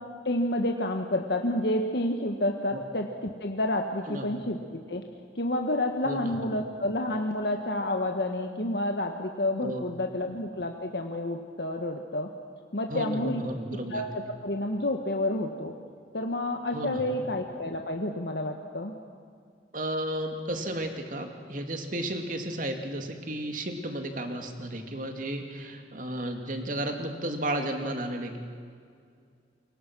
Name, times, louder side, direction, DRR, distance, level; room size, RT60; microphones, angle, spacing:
voice 1, 0.2-4.6 4.9-5.0 5.3-12.3 12.7-13.4 13.8-15.7 16.1-18.9, left 1 dB, 70° left, 3 dB, 1.5 m, -29 dB
voice 2, 4.1-4.4 6.0-6.6 9.6-9.8 12.9-14.0 16.7-17.2 19.7-28.4, right 1 dB, 50° right, 4 dB, 2.6 m, -33 dB
28.0 x 23.5 x 6.2 m, 2.2 s
head